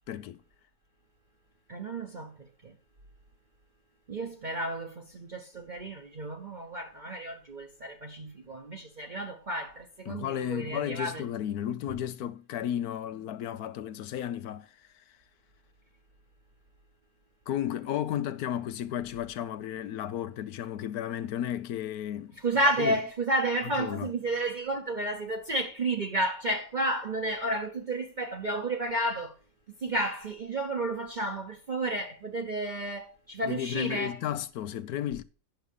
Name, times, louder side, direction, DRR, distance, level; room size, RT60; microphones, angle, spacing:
voice 1, 0.1-0.4 10.1-14.7 17.5-22.4 22.6-23.0 23.6-24.1 33.4-35.2, left 10 dB, 85° left, 1.2 m, -33 dB
voice 2, 1.7-2.3 2.6-2.7 4.1-11.2 22.4-29.3 29.8-34.2, right 1 dB, 35° right, 1.0 m, -31 dB
10.5 x 6.2 x 5.3 m
omnidirectional pair, 1.6 m